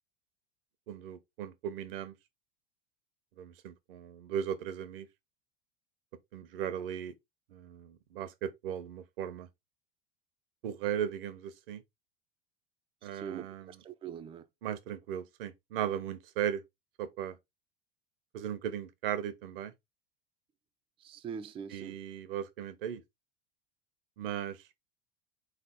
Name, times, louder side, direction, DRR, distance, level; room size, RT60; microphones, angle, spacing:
voice 1, 0.9-2.1 3.4-5.1 6.3-7.1 7.5-9.5 10.6-11.8 13.0-13.7 14.6-16.6 17.0-17.4 18.3-19.7 21.7-23.0 24.2-24.6, right 9 dB, 70° right, 0.8 m, -37 dB
voice 2, 13.0-14.5 21.0-22.0, right 7 dB, 20° right, 0.4 m, -43 dB
3.9 x 3.4 x 3.7 m
hypercardioid pair, 85°, 29 cm